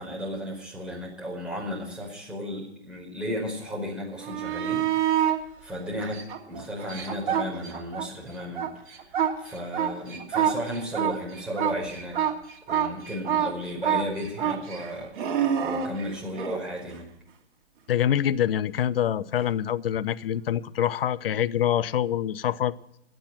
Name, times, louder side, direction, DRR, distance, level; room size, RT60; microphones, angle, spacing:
voice 1, 0.0-4.8 5.6-8.7 9.4-12.2 12.7-15.1 15.6-17.1, equal, 5° right, -3 dB, 5.0 m, -34 dB
sound 1, 4.2-5.4 6.0-8.1 8.4-16.6 19.4-19.5, right 9 dB, 45° right, 2.8 m, -27 dB
voice 2, 17.9-22.7, left 10 dB, 55° left, 16 dB, 0.8 m, -25 dB
17.0 x 10.0 x 6.0 m, 0.79 s
figure-of-eight pair, 120°, 34 cm